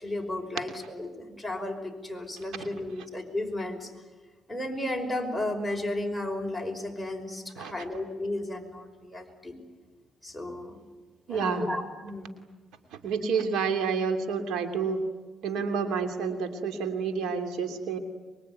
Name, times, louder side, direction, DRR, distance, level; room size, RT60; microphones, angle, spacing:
voice 1, 0.0-3.9 4.5-9.6 10.2-10.8 11.3-12.4, left 1 dB, ahead, 7 dB, 5.5 m, -34 dB
voice 2, 11.3-11.6 12.9-15.0 15.4-18.0, right 5 dB, 90° right, 6 dB, 2.7 m, -29 dB
25.0 x 23.0 x 9.4 m, 1.3 s
cardioid pair, 90°, 0 cm